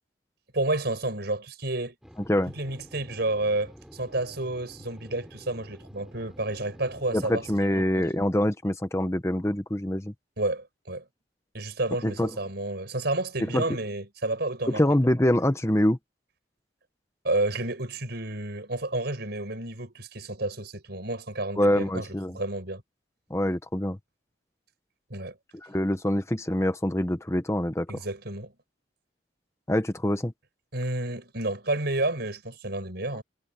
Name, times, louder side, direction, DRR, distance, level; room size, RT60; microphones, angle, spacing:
voice 1, 0.5-1.9 2.5-7.5 7.7-8.0 10.4-11.0 11.5-14.8 15.1-15.2 17.2-22.1 22.3-22.8 25.1-25.4 27.9-28.5 30.7-33.2, right 2 dB, 60° right, 6.2 m, -30 dB
sound 1, 2.0-7.6, equal, ahead, 4.0 m, -49 dB
voice 2, 7.1-10.1 12.0-12.3 13.5-13.6 14.7-16.0 21.6-22.4 23.3-24.0 25.6-27.9 29.7-30.3, left 1 dB, 15° left, 1.0 m, -25 dB
head